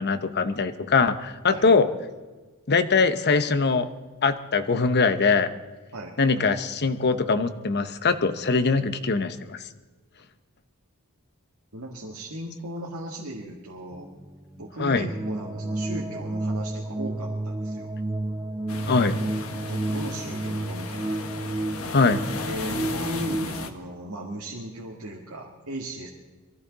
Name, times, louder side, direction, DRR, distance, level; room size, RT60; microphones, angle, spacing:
voice 1, 0.0-1.9 2.7-3.9 4.2-5.5 6.2-9.6 14.8-15.1 18.9-19.1 21.9-22.2, left 4 dB, 50° left, 9 dB, 0.9 m, -22 dB
voice 2, 11.7-14.1 14.6-17.9 18.8-19.3 19.7-21.2 22.2-26.1, right 1 dB, 80° right, -3 dB, 2.0 m, -37 dB
sound 1, 13.9-23.7, right 2 dB, 10° right, 0.5 m, -31 dB
sound 2, 18.7-23.7, left 4 dB, 70° left, 1.3 m, -36 dB
23.0 x 14.0 x 4.0 m, 1.3 s
head